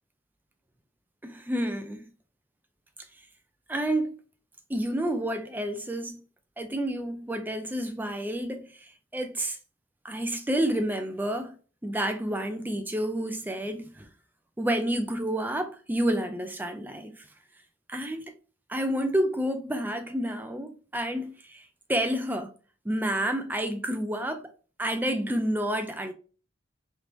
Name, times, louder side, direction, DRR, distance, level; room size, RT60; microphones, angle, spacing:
voice 1, 1.2-2.1 3.7-4.2 4.7-6.2 6.6-9.6 10.0-11.6 11.8-14.1 14.6-17.3 17.9-18.3 18.7-22.5 22.8-24.5 24.8-26.1, right 1 dB, 10° right, 0.4 m, -29 dB
3.5 x 3.0 x 2.5 m
head